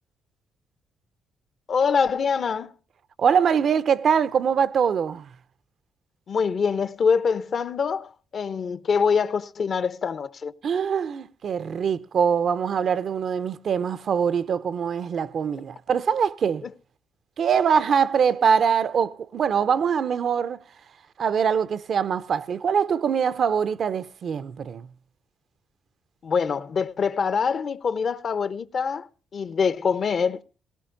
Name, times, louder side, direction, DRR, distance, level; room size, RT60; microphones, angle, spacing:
voice 1, 1.7-2.7 6.3-10.5 16.6-16.7 26.2-30.4, left 6 dB, 50° left, 0.7 m, -24 dB
voice 2, 3.2-5.3 10.6-16.6 17.4-20.6 21.2-24.9, right 7 dB, 55° right, 0.5 m, -23 dB
17.5 x 17.5 x 2.6 m
cardioid pair, 90°, 0 cm